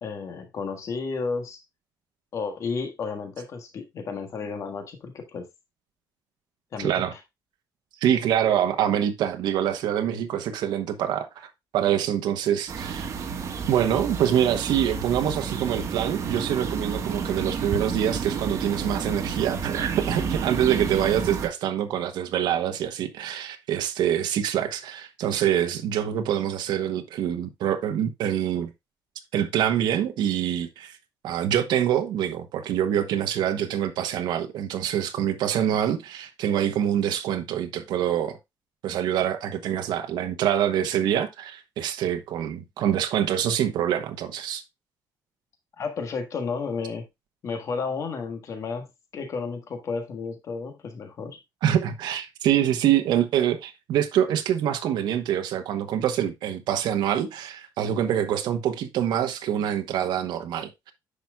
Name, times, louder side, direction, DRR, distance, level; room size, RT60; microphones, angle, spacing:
voice 1, 0.0-1.6 2.3-5.5 6.7-7.2 45.8-47.0 47.4-51.4, left 5 dB, 45° left, 1.7 m, -32 dB
voice 2, 6.8-7.1 8.0-13.1 13.7-28.7 29.3-31.0 31.2-38.4 38.8-44.6 51.6-60.9, right 10 dB, 80° right, 1.1 m, -25 dB
sound 1, 12.7-21.5, right 6 dB, 45° right, 1.4 m, -30 dB
10.0 x 6.0 x 2.3 m
cardioid pair, 160°, 7 cm